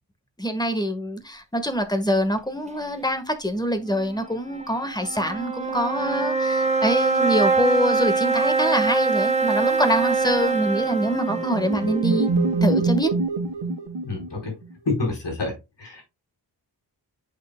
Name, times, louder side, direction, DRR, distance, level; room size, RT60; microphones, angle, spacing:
voice 1, 0.4-12.3 12.6-13.1, equal, 10° left, 1.5 m, -25 dB
sound 1, 3.8-13.2, right 4 dB, 15° right, 1.5 m, -24 dB
sound 2, 10.7-14.7, right 3 dB, 80° right, 1.7 m, -25 dB
voice 2, 14.0-14.5 14.8-15.5 15.8-16.0, left 3 dB, 70° left, 4.4 m, -27 dB
8.3 x 6.6 x 2.3 m
wide cardioid pair, 80°, 43 cm